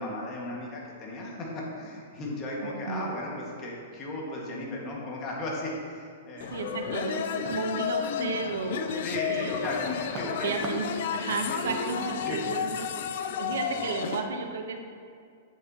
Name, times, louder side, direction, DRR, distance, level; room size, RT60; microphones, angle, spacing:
voice 1, 0.0-6.6 9.0-10.5 11.5-11.7 12.2-12.4, left 1 dB, 30° left, -3 dB, 1.7 m, -35 dB
voice 2, 6.3-9.7 10.4-14.8, right 5 dB, 80° right, 4 dB, 1.0 m, -33 dB
sound 1, 6.4-14.3, left 8 dB, 60° left, 0.5 m, -32 dB
sound 2, 7.4-8.4 8.8-14.0, right 3 dB, 35° right, 0.9 m, -43 dB
9.2 x 7.5 x 2.9 m, 2.3 s
hypercardioid pair, 145°, 0 cm